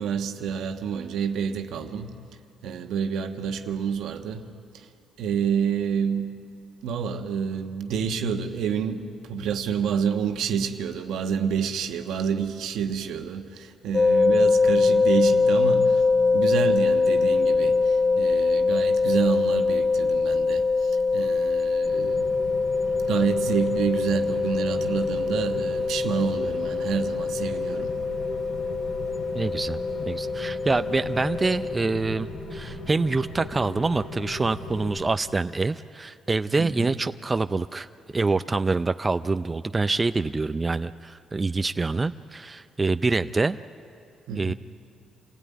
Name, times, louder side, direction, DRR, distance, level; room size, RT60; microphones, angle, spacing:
voice 1, 0.0-2.2 2.6-4.9 5.2-6.5 6.8-16.0 16.3-22.3 23.1-27.9 36.6-37.0 44.3-44.5, right 7 dB, 80° right, 1.3 m, -28 dB
sound 1, 13.9-31.8, left 4 dB, 40° left, 0.8 m, -23 dB
Rain, 21.8-35.0, left 2 dB, 80° left, 4.6 m, -37 dB
voice 2, 29.3-29.8 30.1-43.6 44.3-44.5, right 3 dB, 25° right, 0.5 m, -26 dB
27.5 x 16.5 x 9.4 m
cardioid pair, 90°, 0 cm